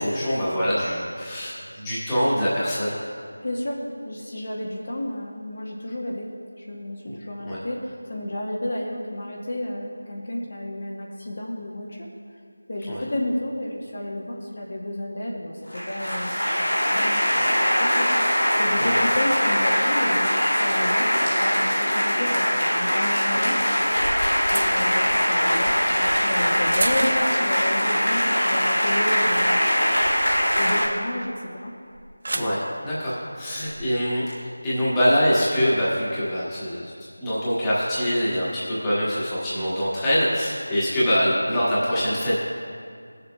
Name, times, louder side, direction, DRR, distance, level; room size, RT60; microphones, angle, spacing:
voice 1, 0.0-3.0 7.4-7.6 12.9-13.0 18.8-19.0 32.3-34.3 34.6-36.9 37.2-42.4, equal, 10° left, -10 dB, 1.4 m, -24 dB
voice 2, 3.4-6.3 6.6-12.1 12.7-23.6 24.5-29.6 30.6-31.7, left 1 dB, 50° left, -2 dB, 1.0 m, -31 dB
sound 1, 15.7-30.9, equal, 70° left, 2.1 m, -22 dB
sound 2, 22.3-22.4 23.6-27.5 27.9-28.3 28.6-31.2 31.9-32.6 33.5-33.8, right 1 dB, 50° right, 0.6 m, -34 dB
17.0 x 6.8 x 2.3 m, 2.3 s
figure-of-eight pair, 170°, 0 cm